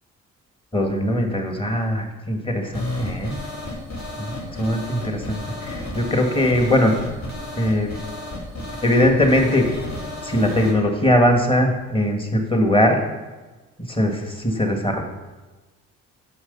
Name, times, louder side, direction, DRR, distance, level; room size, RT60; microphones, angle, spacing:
voice 1, 0.7-3.4 4.2-7.0 7.5-7.9 8.8-9.7 10.2-13.0 13.9-15.0, left 1 dB, 15° left, 3 dB, 1.8 m, -20 dB
sound 1, 2.7-10.7, left 2 dB, 55° left, 3.1 m, -33 dB
9.6 x 6.9 x 5.4 m, 1.2 s
cardioid pair, 90°, 30 cm